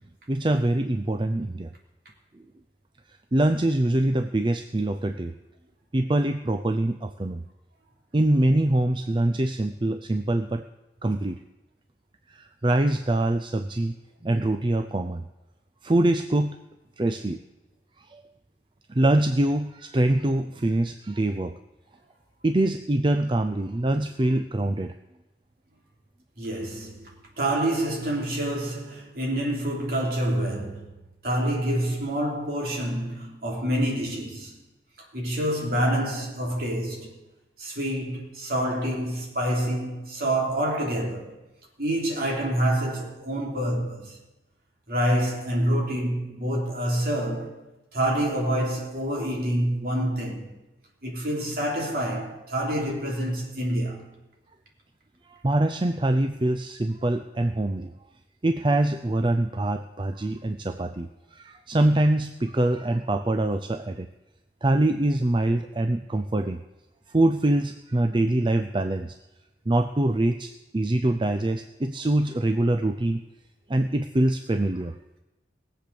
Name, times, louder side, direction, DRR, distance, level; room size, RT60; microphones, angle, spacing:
voice 1, 0.3-1.7 3.3-5.3 5.9-7.4 8.1-10.6 11.0-11.4 12.3-14.0 14.2-15.2 15.8-16.6 17.0-17.4 18.0-18.2 18.9-21.6 22.4-25.0 55.3-57.9 58.4-64.1 64.6-66.6 67.1-69.1 69.7-73.2 73.7-75.0, right 1 dB, 25° right, 0.5 m, -24 dB
voice 2, 26.4-34.6 35.0-37.2 37.6-41.4 41.8-44.2 44.9-47.7 47.9-50.5 51.0-54.1, right 1 dB, 55° right, 3.4 m, -27 dB
19.0 x 7.8 x 7.0 m
head